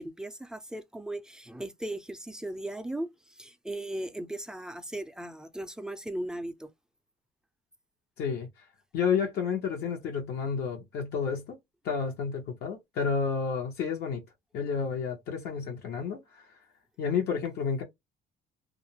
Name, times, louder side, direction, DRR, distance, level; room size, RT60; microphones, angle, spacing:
voice 1, 0.0-3.1 3.4-6.7, right 1 dB, 5° right, 0.3 m, -37 dB
voice 2, 8.2-8.6 8.9-11.6 11.8-14.2 14.5-16.5 17.0-17.8, left 6 dB, 75° left, 0.8 m, -30 dB
2.4 x 2.0 x 2.9 m
cardioid pair, 110°, 17 cm